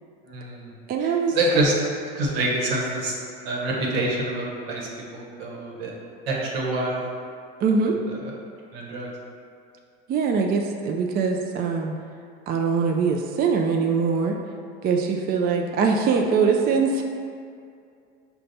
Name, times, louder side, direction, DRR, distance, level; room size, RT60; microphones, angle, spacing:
voice 1, 0.2-0.7 1.0-1.7 2.1-3.2 3.4-5.9 6.3-7.0 7.8-8.3 8.7-9.1, right 2 dB, 80° right, -2 dB, 1.0 m, -26 dB
voice 2, 0.9-1.4 7.6-8.0 10.1-11.9 12.5-14.4 14.8-17.0, right 5 dB, 35° right, 2 dB, 0.4 m, -22 dB
5.2 x 2.3 x 3.9 m, 2.4 s
supercardioid pair, 90°, 29 cm